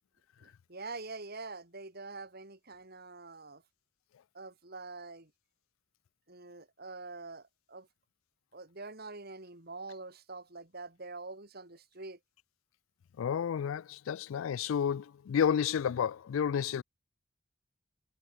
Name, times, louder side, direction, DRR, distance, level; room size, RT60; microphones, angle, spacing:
voice 1, 0.4-3.6 4.3-5.3 6.3-7.9 8.5-12.2, right 3 dB, 50° right, 4.1 m, -45 dB
voice 2, 13.2-16.8, left 8 dB, 75° left, 0.3 m, -31 dB
head